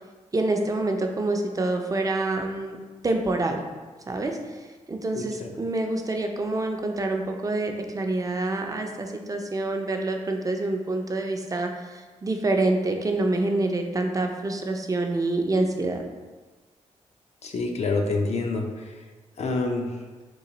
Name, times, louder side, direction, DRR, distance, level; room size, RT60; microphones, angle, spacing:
voice 1, 0.3-2.8 3.0-3.6 4.1-16.0, right 2 dB, 25° right, 3 dB, 0.5 m, -27 dB
voice 2, 5.2-5.5 17.4-19.0 19.4-20.0, left 3 dB, 60° left, 2 dB, 0.5 m, -27 dB
3.8 x 2.5 x 2.9 m, 1.3 s
cardioid pair, 55°, 13 cm